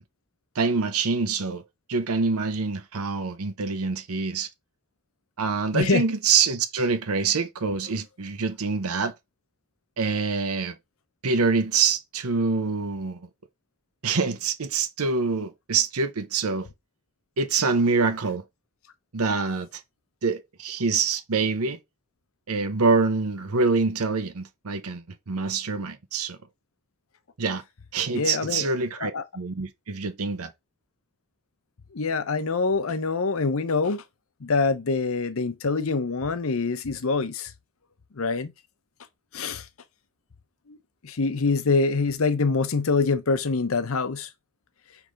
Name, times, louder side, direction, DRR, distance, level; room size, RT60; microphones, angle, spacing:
voice 1, 0.6-1.6 1.9-4.5 5.4-9.1 10.0-10.7 11.2-13.2 14.0-16.7 17.4-18.4 19.1-19.8 20.2-21.8 22.5-26.4 27.4-27.6 27.9-30.5, right 4 dB, 85° right, 0.8 m, -25 dB
voice 2, 5.7-6.0 28.1-28.7 29.0-29.2 31.9-34.0 34.4-37.5 38.2-38.5 39.3-39.6 40.7-40.8 41.0-44.3, left 4 dB, 75° left, 0.7 m, -25 dB
5.8 x 3.3 x 5.0 m
head